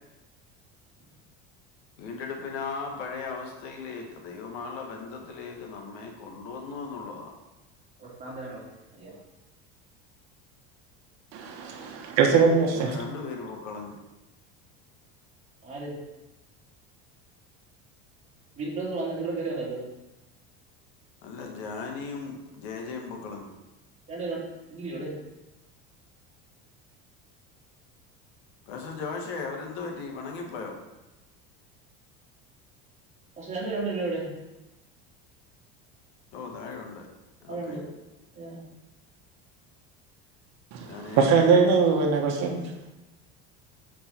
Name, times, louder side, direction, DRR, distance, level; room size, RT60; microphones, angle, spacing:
voice 1, 2.0-7.3 12.7-14.0 21.2-23.5 28.7-30.8 36.3-37.1 37.4-37.8 40.8-41.3, left 4 dB, 80° left, 2 dB, 1.6 m, -37 dB
voice 2, 8.0-9.2 15.6-16.0 18.6-19.8 24.1-24.4 24.7-25.2 33.4-34.3 37.5-37.8 38.3-38.6, right 3 dB, 20° right, -5 dB, 2.6 m, -33 dB
voice 3, 11.3-12.9 40.7-42.6, right 5 dB, 60° right, 2 dB, 1.2 m, -22 dB
6.8 x 5.2 x 4.4 m, 0.99 s
cardioid pair, 150°, 31 cm